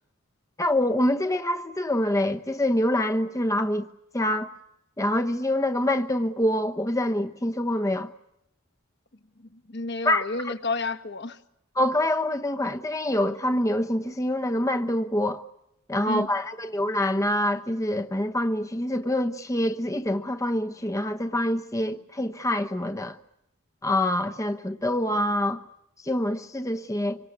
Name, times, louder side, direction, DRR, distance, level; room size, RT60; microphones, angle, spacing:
voice 1, 0.6-3.8 4.1-4.5 5.0-8.1 10.0-10.5 11.8-15.4 15.9-23.1 23.8-25.6 26.0-27.2, left 1 dB, 15° left, 1.0 m, -25 dB
voice 2, 9.4-11.4 16.0-16.3, left 3 dB, 50° left, 1.6 m, -31 dB
26.5 x 25.0 x 8.4 m
head